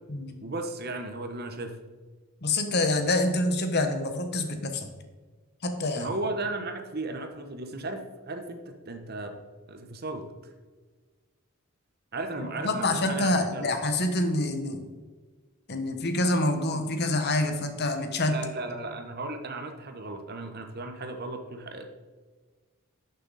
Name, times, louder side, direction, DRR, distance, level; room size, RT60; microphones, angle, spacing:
voice 1, 0.4-1.7 5.9-9.3 9.7-10.3 12.1-13.7 18.3-21.9, right 2 dB, 45° right, 6 dB, 1.1 m, -35 dB
voice 2, 2.4-4.9 5.6-6.1 12.6-14.8 15.7-18.4, left 2 dB, 50° left, 7 dB, 1.1 m, -26 dB
12.0 x 6.6 x 4.1 m, 1.4 s
head